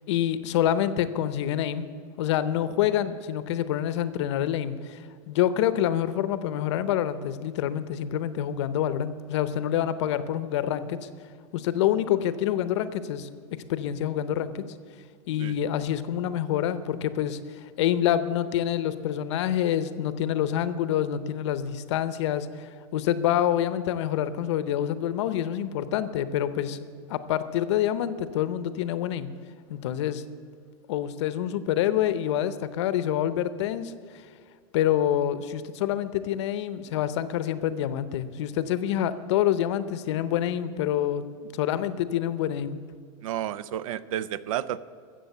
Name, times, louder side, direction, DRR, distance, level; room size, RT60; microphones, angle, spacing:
voice 1, 0.1-1.9 2.2-5.0 5.3-11.1 11.5-13.3 13.7-14.6 15.3-17.4 17.8-26.8 27.1-29.3 29.7-30.2 30.9-33.9 34.7-42.8, left 11 dB, 55° left, 14 dB, 0.7 m, -27 dB
voice 2, 43.2-44.8, right 11 dB, 70° right, 17 dB, 0.6 m, -31 dB
14.0 x 7.5 x 8.1 m, 2.1 s
supercardioid pair, 170°, 18 cm